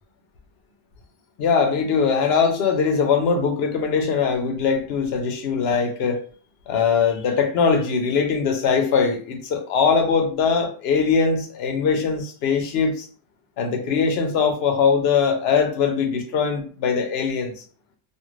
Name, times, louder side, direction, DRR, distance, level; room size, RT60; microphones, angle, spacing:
voice 1, 1.4-6.2 6.7-13.1 13.6-17.5, left 5 dB, 70° left, 0.8 m, -21 dB
2.4 x 2.4 x 3.1 m
omnidirectional pair, 1.1 m